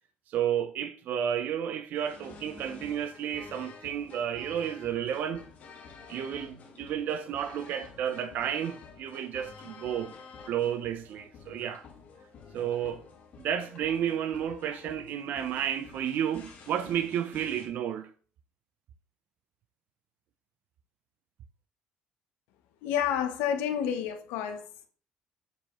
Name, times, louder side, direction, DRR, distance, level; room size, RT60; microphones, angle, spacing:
voice 1, 0.3-5.5 6.1-10.1 10.5-11.8 12.5-13.0 13.4-18.1, right 9 dB, 65° right, 0.6 m, -32 dB
sound 1, 1.9-17.7, left 5 dB, 55° left, 1.5 m, -50 dB
voice 2, 22.8-24.6, left 9 dB, 90° left, 0.8 m, -29 dB
7.0 x 4.7 x 3.1 m
cardioid pair, 105°, 3 cm